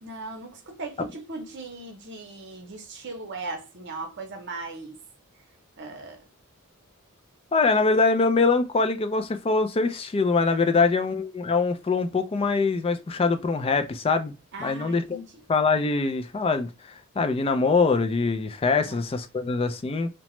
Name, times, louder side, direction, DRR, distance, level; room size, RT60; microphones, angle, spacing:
voice 1, 0.0-5.0 5.8-6.2 10.6-10.9 14.5-15.3 18.8-19.0, right 3 dB, 50° right, 0.7 m, -38 dB
voice 2, 7.5-14.3 14.6-15.2 15.5-20.1, left 4 dB, 25° left, 0.3 m, -23 dB
2.9 x 2.1 x 3.0 m
head